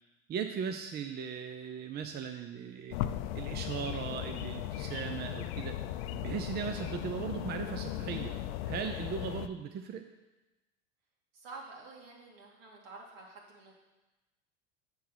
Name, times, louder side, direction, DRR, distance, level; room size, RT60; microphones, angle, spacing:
voice 1, 0.3-3.0 3.3-5.8 6.1-8.3 8.6-10.0, right 7 dB, 35° right, 6 dB, 0.6 m, -38 dB
sound 1, 2.9-9.5, left 12 dB, 80° left, 0.5 m, -37 dB
voice 2, 11.3-13.7, right 3 dB, 70° right, -2 dB, 2.7 m, -49 dB
7.1 x 6.4 x 6.1 m, 1.1 s
supercardioid pair, 110°, 30 cm